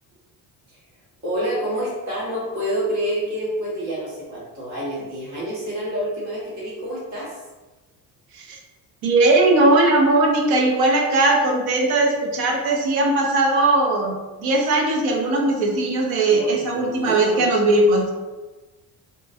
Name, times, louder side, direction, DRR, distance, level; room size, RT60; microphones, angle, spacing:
voice 1, 1.2-7.4 16.3-17.5, right 1 dB, 45° right, -7 dB, 1.3 m, -28 dB
voice 2, 9.0-18.1, right 2 dB, 70° right, 1 dB, 0.7 m, -19 dB
2.9 x 2.3 x 2.5 m, 1.2 s
cardioid pair, 155°, 38 cm